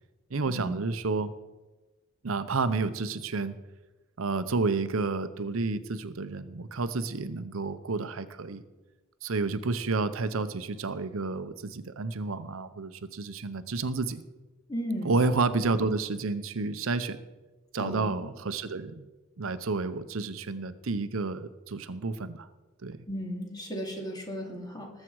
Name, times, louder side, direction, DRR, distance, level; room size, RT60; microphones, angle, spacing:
voice 1, 0.3-1.3 2.2-3.5 4.2-8.6 9.2-14.2 15.0-17.2 17.7-19.1 19.4-22.5 22.8-23.0, right 3 dB, 75° right, 12 dB, 0.7 m, -30 dB
voice 2, 14.7-15.2 17.8-18.1 23.1-24.9, equal, 20° left, 1 dB, 2.4 m, -35 dB
19.5 x 7.6 x 4.7 m, 1.2 s
head